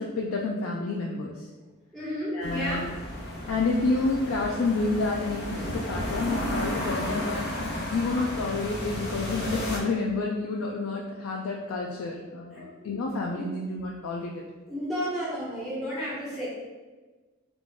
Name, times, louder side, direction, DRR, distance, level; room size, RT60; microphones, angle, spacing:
voice 1, 0.0-1.5 2.3-2.9 3.5-7.5 7.9-14.3, left 3 dB, 75° left, -1 dB, 0.4 m, -29 dB
voice 2, 1.9-2.8 12.5-12.9 13.3-13.5 14.7-16.5, equal, ahead, -10 dB, 1.2 m, -32 dB
sound 1, 2.4-9.8, left 1 dB, 50° left, 0.8 m, -33 dB
3.7 x 2.3 x 3.6 m, 1.3 s
head